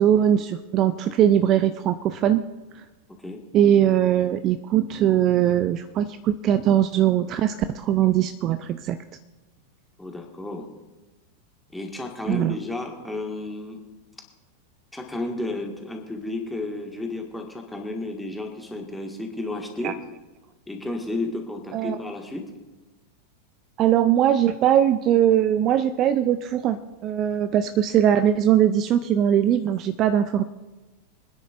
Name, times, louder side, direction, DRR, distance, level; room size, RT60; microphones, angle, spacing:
voice 1, 0.0-2.4 3.5-9.0 12.3-12.6 19.8-19.9 21.7-22.0 23.8-30.4, right 10 dB, 35° right, 12 dB, 0.4 m, -21 dB
voice 2, 10.0-10.7 11.7-13.8 14.9-20.0 20.7-22.5, left 2 dB, 5° left, 2 dB, 1.8 m, -32 dB
25.0 x 9.9 x 2.5 m, 1.1 s
figure-of-eight pair, 90°, 0 cm